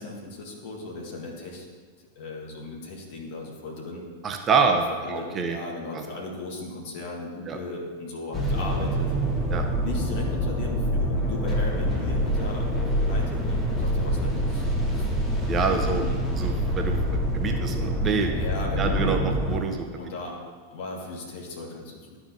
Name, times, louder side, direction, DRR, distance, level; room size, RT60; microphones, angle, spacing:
voice 1, 0.0-1.7 2.1-4.0 4.9-9.1 9.8-14.7 14.9-15.1 15.7-16.2 18.3-19.3 20.0-20.4 20.7-22.2, left 2 dB, 50° left, -1 dB, 1.6 m, -37 dB
voice 2, 4.2-5.6 5.9-6.0 7.5-7.6 9.5-9.7 15.5-16.1 16.4-18.3 18.8-20.0, right 5 dB, 25° right, 4 dB, 0.6 m, -26 dB
sound 1, 8.3-19.6, equal, 5° left, 1.3 m, -26 dB
12.0 x 4.8 x 2.8 m, 1.5 s
figure-of-eight pair, 90°, 0 cm